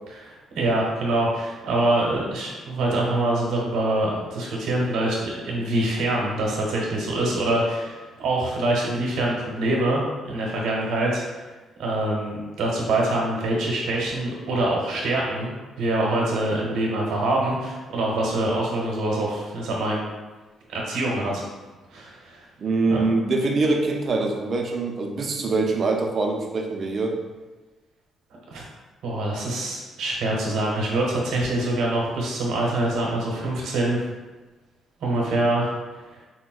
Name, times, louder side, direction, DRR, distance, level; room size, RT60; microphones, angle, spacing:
voice 1, 0.2-11.2 11.8-20.0 20.7-21.5 21.9-22.4 22.9-23.0 28.5-28.6 29.0-34.0 35.0-35.7, right 1 dB, 85° right, -2 dB, 0.8 m, -25 dB
voice 2, 22.6-27.2, right 3 dB, 45° right, 2 dB, 0.4 m, -24 dB
4.3 x 2.1 x 2.3 m, 1.2 s
cardioid pair, 90°, 0 cm